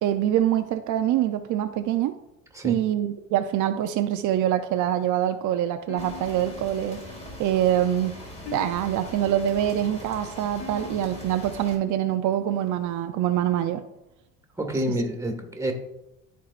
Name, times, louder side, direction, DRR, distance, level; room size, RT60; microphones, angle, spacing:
voice 1, 0.0-2.1 2.6-7.0 7.4-8.2 8.5-13.8, right 11 dB, 65° right, 8 dB, 0.6 m, -25 dB
sound 1, 5.9-13.0, left 6 dB, 65° left, 1.6 m, -45 dB
sound 2, 6.0-11.8, equal, 20° left, 2.4 m, -42 dB
voice 2, 14.6-15.7, equal, 10° right, 2 dB, 1.7 m, -28 dB
14.0 x 4.6 x 2.5 m, 0.88 s
cardioid pair, 100°, 33 cm